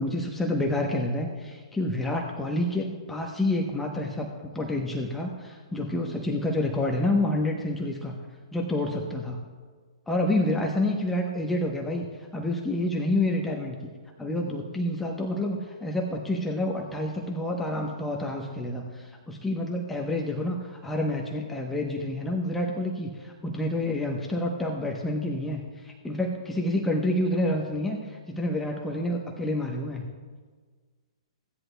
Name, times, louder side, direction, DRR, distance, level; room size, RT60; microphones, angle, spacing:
voice 1, 0.0-8.2 8.5-9.4 10.1-13.8 14.2-30.1, left 1 dB, 5° left, 0 dB, 0.9 m, -28 dB
15.5 x 10.5 x 2.3 m, 1.5 s
hypercardioid pair, 130°, 3 cm